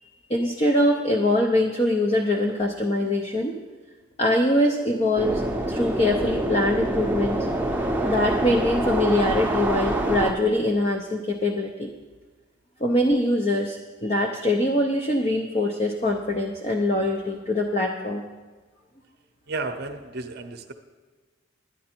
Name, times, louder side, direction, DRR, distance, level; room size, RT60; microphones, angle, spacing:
voice 1, 0.3-3.6 4.2-5.4 5.7-7.4 8.0-11.9 12.8-18.2, left 1 dB, 30° left, 1 dB, 0.6 m, -23 dB
sound 1, 5.2-10.3, right 1 dB, 10° right, 0.7 m, -26 dB
voice 2, 19.5-20.7, right 3 dB, 55° right, 8 dB, 0.7 m, -32 dB
11.5 x 9.6 x 4.4 m, 1.4 s
head